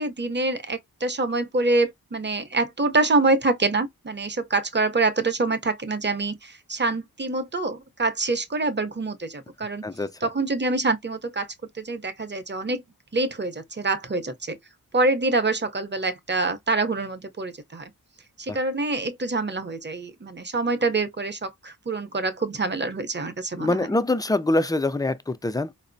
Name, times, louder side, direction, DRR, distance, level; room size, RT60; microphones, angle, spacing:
voice 1, 0.0-9.8 10.2-12.8 13.1-14.6 14.9-17.9 18.4-23.9, right 3 dB, 30° right, 0.7 m, -26 dB
voice 2, 23.6-25.7, left 2 dB, 10° left, 0.4 m, -24 dB
4.1 x 2.0 x 2.6 m
cardioid pair, 50°, 38 cm